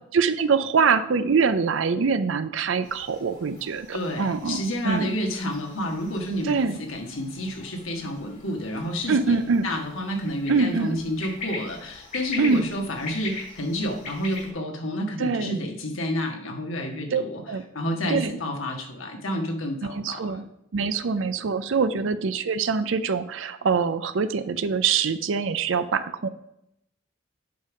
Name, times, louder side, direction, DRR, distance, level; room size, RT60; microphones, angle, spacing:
voice 1, 0.1-5.1 6.4-6.8 9.1-9.7 10.5-11.0 12.4-12.7 15.2-15.6 17.1-17.6 18.1-18.4 19.8-20.4 20.7-26.3, right 5 dB, 75° right, 11 dB, 0.5 m, -24 dB
sound 1, 2.8-14.5, left 3 dB, 35° left, 3.3 m, -41 dB
voice 2, 3.9-9.4 9.6-17.4 17.7-20.5 21.9-22.0, equal, 90° left, 3 dB, 1.6 m, -30 dB
7.9 x 5.3 x 4.9 m, 0.78 s
head